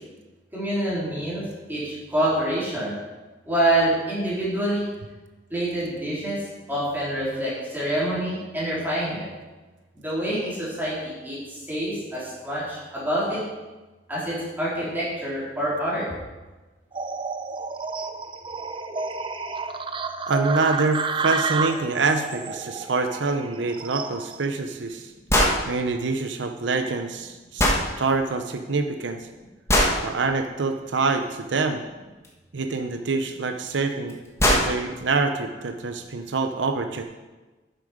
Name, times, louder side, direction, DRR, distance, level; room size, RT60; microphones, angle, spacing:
voice 1, 0.5-1.4 1.7-3.0 3.5-4.8 5.5-6.4 6.7-9.3 9.9-13.4 14.1-16.1, right 1 dB, 10° right, -8 dB, 3.7 m, -26 dB
sound 1, 16.9-24.4, right 4 dB, 30° right, 0.5 m, -30 dB
voice 2, 20.3-25.1 25.7-27.6 28.0-29.3 30.0-31.8 32.5-34.2 34.4-37.0, right 3 dB, 75° right, 6 dB, 0.7 m, -26 dB
sound 2, 25.3-25.6 27.6-27.8 29.7-30.0 32.2-32.3 33.7-33.8 34.1-34.2 34.4-34.7, left 1 dB, 15° left, 1.5 m, -19 dB
10.0 x 7.5 x 5.0 m, 1.2 s
head